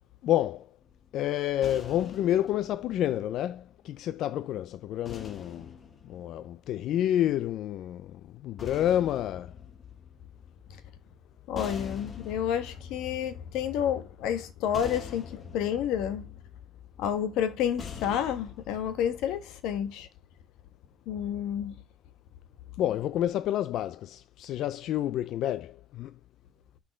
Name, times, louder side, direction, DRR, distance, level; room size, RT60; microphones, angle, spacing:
voice 1, 0.2-0.7 1.1-5.7 6.0-9.5 22.8-26.1, left 12 dB, 65° left, 0.4 m, -29 dB
sound 1, 0.8-4.1 5.0-7.3 8.3-19.3, left 6 dB, 30° left, 1.5 m, -46 dB
voice 2, 11.5-16.3 17.0-20.1 21.1-21.8, left 9 dB, 90° left, 1.5 m, -30 dB
6.3 x 5.6 x 4.3 m
cardioid pair, 150°, 0 cm